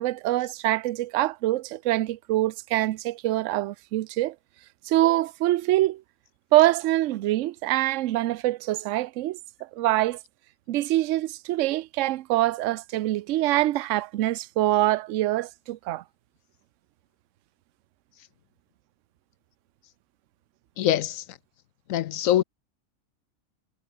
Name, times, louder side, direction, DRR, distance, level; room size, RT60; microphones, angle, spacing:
voice 1, 0.0-4.3 4.9-6.0 6.5-10.2 10.7-16.0, right 16 dB, 65° right, 0.8 m, -24 dB
voice 2, 20.8-21.2 21.9-22.4, left 12 dB, 70° left, 0.9 m, -23 dB
omnidirectional pair, 1.6 m